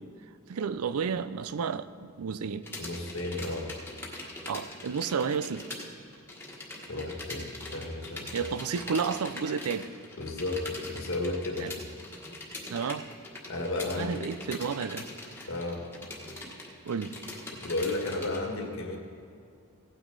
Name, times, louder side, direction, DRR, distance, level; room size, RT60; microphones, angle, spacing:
voice 1, 0.5-2.7 4.5-5.7 8.3-9.9 11.6-11.7 12.7-13.1 14.0-15.1 16.9-17.2, right 6 dB, 80° right, 0.4 m, -31 dB
sound 1, 2.6-5.9 6.1-18.4, left 2 dB, 10° left, 1.4 m, -42 dB
voice 2, 2.8-3.7 6.9-8.3 10.2-11.7 13.5-14.2 15.5-15.8 17.5-19.0, left 2 dB, 60° left, 1.7 m, -33 dB
16.5 x 9.2 x 4.0 m
head